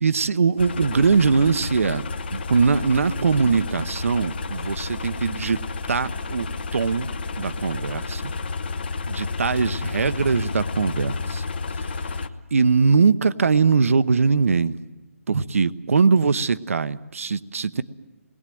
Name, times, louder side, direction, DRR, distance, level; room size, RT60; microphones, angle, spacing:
voice 1, 0.0-2.0 2.3-6.5 6.7-7.1 7.4-8.3 9.1-11.4 11.7-12.1 12.5-14.8 15.3-17.8, right 5 dB, 65° right, 14 dB, 0.9 m, -21 dB
sound 1, 0.6-12.3, left 4 dB, 40° left, 1.1 m, -31 dB
28.0 x 21.0 x 7.7 m, 1.1 s
hypercardioid pair, 170°, 8 cm